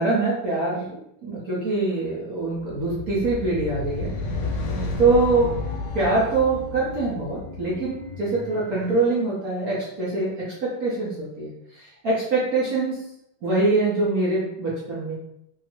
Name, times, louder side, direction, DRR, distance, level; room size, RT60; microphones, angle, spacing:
voice 1, 0.0-4.1 4.5-4.6 5.0-5.5 5.9-13.0 13.4-15.2, right 3 dB, 55° right, -7 dB, 1.2 m, -24 dB
sound 1, 2.6-9.1, left 2 dB, 70° left, 1.1 m, -32 dB
3.4 x 2.9 x 2.9 m, 0.75 s
omnidirectional pair, 2.3 m